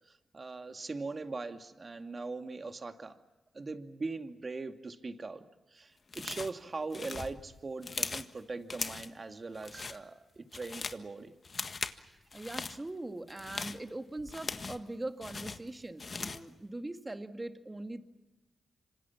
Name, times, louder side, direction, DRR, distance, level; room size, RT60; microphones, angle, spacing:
voice 1, 0.1-3.2 3.5-5.4 5.7-11.3, right 3 dB, 45° right, 6 dB, 2.4 m, -41 dB
sound 1, 6.1-6.6 6.9-8.3 8.7-9.2 9.5-10.0 10.4-11.0 11.4-12.0 12.3-12.8 13.3-14.9 15.2-16.5, left 4 dB, 50° left, 1.6 m, -39 dB
voice 2, 11.9-18.0, right 2 dB, 25° right, 7 dB, 2.3 m, -41 dB
26.5 x 26.0 x 7.4 m, 1.1 s
supercardioid pair, 40°, 0 cm